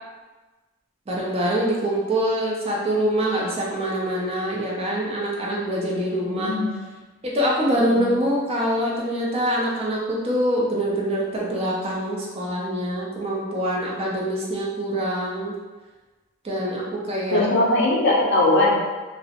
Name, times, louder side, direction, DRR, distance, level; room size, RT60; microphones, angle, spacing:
voice 1, 1.1-6.6 7.2-15.5 16.4-17.4, equal, 30° right, -4 dB, 0.4 m, -24 dB
voice 2, 6.3-6.7 7.8-8.1 17.3-18.8, left 2 dB, 55° left, -3 dB, 0.5 m, -20 dB
2.3 x 2.0 x 2.8 m, 1.2 s
head